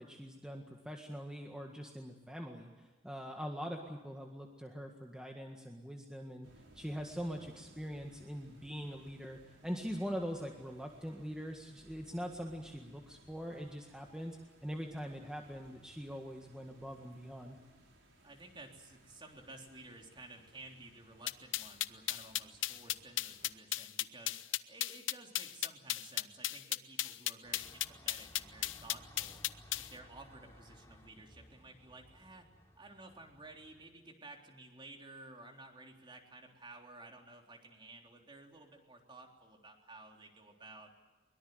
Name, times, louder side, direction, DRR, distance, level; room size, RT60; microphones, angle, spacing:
voice 1, 0.0-6.5 6.7-14.4 14.6-17.6, equal, 5° right, 1 dB, 1.8 m, -43 dB
sound 1, 6.4-23.6, right 1 dB, 90° right, 5.9 m, -63 dB
voice 2, 18.2-24.4 24.7-29.4 29.8-32.5 32.8-40.9, right 2 dB, 25° right, 2 dB, 3.7 m, -54 dB
sound 2, 21.3-29.9, left 14 dB, 90° left, 0.8 m, -35 dB
sound 3, 27.4-33.9, equal, 15° left, 3.9 m, -59 dB
23.0 x 22.5 x 8.0 m, 1.3 s
head